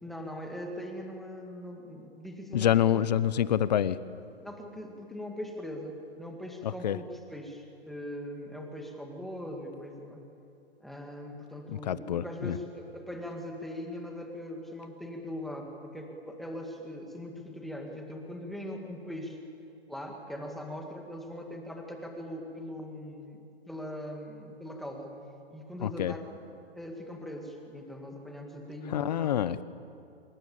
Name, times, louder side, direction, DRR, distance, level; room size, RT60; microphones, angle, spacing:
voice 1, 0.0-3.0 4.4-10.2 10.8-19.4 19.9-25.1 25.5-26.4 26.7-29.4, left 1 dB, ahead, 2 dB, 1.9 m, -41 dB
voice 2, 2.5-4.0 6.6-7.0 11.9-12.6 25.8-26.1 28.9-29.6, left 10 dB, 40° left, 16 dB, 0.9 m, -26 dB
26.0 x 23.0 x 8.8 m, 2.5 s
hypercardioid pair, 160°, 33 cm